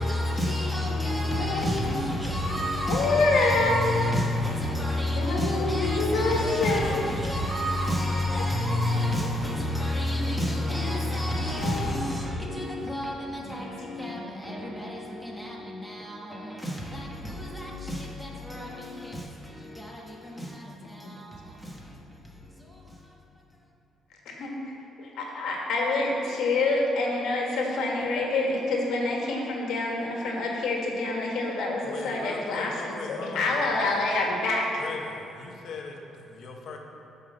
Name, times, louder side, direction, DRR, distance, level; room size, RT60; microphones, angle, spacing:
voice 1, 0.0-23.2 23.5-23.6, left 1 dB, ahead, -3 dB, 1.3 m, -30 dB
voice 2, 0.9-2.0 2.9-4.1 5.2-7.0 8.4-8.7 10.2-10.3 10.7-11.0 11.6-11.9 13.4-13.6 14.0-14.7 20.8-21.1 24.2-24.5 25.0-34.7, left 2 dB, 70° left, -1 dB, 1.7 m, -27 dB
voice 3, 31.8-34.0 34.8-36.8, left 4 dB, 50° left, 1 dB, 1.1 m, -39 dB
9.3 x 5.6 x 6.7 m, 2.9 s
cardioid pair, 175°, 0 cm